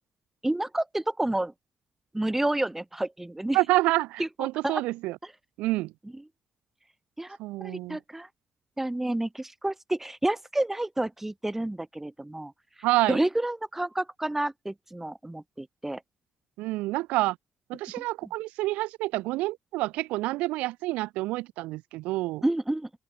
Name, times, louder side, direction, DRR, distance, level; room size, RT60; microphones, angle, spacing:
voice 1, 0.4-1.5 2.1-3.6 4.2-4.8 7.2-8.3 8.8-12.5 13.1-16.0 18.0-18.1 22.4-22.9, right 1 dB, 15° right, 0.5 m, -29 dB
voice 2, 3.5-5.2 5.6-5.9 7.4-8.0 12.8-13.2 16.6-17.4 17.7-22.4, right 19 dB, 80° right, 0.5 m, -28 dB
open air
hypercardioid pair, 45°, 2 cm